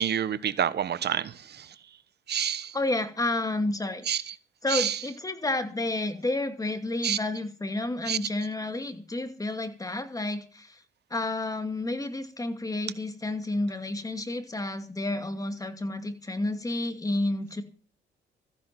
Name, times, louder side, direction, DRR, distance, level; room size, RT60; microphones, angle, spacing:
voice 1, 0.0-1.7 2.3-2.8 4.1-4.3 4.7-5.0 7.0-7.2 8.1-8.2, right 9 dB, 55° right, 15 dB, 1.2 m, -28 dB
voice 2, 2.7-4.2 4.6-10.8 11.1-17.6, left 2 dB, 15° left, 9 dB, 2.5 m, -30 dB
14.5 x 10.5 x 6.0 m, 0.38 s
cardioid pair, 90°, 20 cm